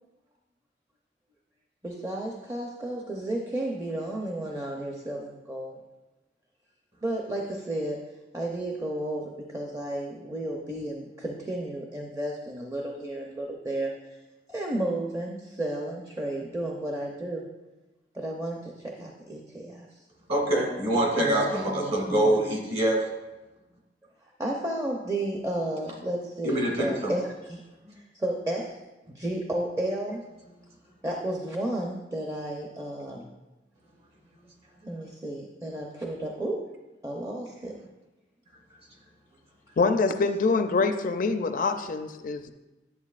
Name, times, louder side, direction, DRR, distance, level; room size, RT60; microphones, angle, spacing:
voice 1, 1.8-5.8 7.0-8.0 8.3-13.9 14.5-17.5 18.1-20.0 21.2-22.4 24.4-27.6 28.1-28.8 29.1-30.2 31.0-33.3 34.8-36.7 37.0-37.8, right 1 dB, 20° right, 0 dB, 0.6 m, -32 dB
voice 2, 20.3-23.1 26.4-27.2, right 1 dB, 35° right, 0 dB, 1.9 m, -25 dB
voice 3, 39.8-42.5, left 4 dB, 50° left, 8 dB, 0.4 m, -25 dB
10.5 x 7.7 x 2.4 m, 1.1 s
head